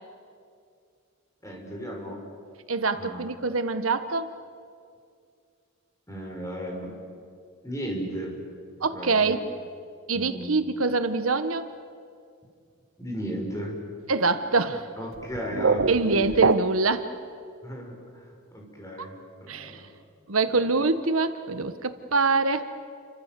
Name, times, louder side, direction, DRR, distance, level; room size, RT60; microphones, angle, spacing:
voice 1, 1.4-2.2 2.9-3.2 6.1-7.0 7.6-8.3 8.9-9.4 10.1-10.6 13.0-13.8 15.0-16.4 17.6-19.1 19.4-19.9 20.5-20.6, equal, 15° left, 0 dB, 5.5 m, -35 dB
voice 2, 2.7-4.4 8.8-9.4 10.1-11.7 14.1-14.9 15.9-17.1 19.5-19.8 20.3-22.7, right 3 dB, 85° right, 10 dB, 1.3 m, -25 dB
sound 1, 15.1-17.1, right 4 dB, 65° right, 0.7 m, -25 dB
29.5 x 25.0 x 7.6 m, 2.3 s
head